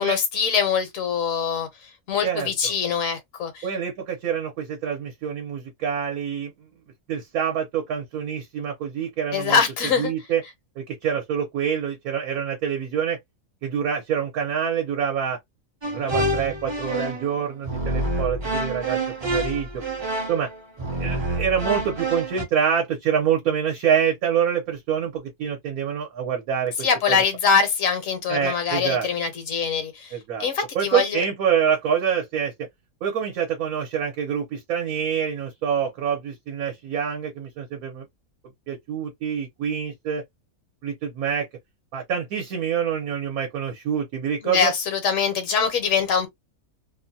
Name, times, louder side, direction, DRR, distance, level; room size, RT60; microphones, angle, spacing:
voice 1, 0.0-1.7 2.1-3.6 9.3-10.1 26.8-30.1 30.4-31.2 44.4-46.3, left 6 dB, 65° left, 1.1 m, -23 dB
voice 2, 2.2-2.7 3.6-6.5 7.1-9.6 10.0-10.4 10.8-13.2 13.6-15.4 15.9-19.8 20.3-20.5 20.9-27.2 28.3-29.1 30.1-30.5 30.7-32.7 33.0-38.0 38.7-40.2 40.8-41.5 41.9-44.7, right 8 dB, 75° right, 1.2 m, -26 dB
sound 1, 15.8-17.3 17.6-22.4, right 1 dB, 30° right, 0.5 m, -27 dB
2.8 x 2.2 x 2.5 m
omnidirectional pair, 1.6 m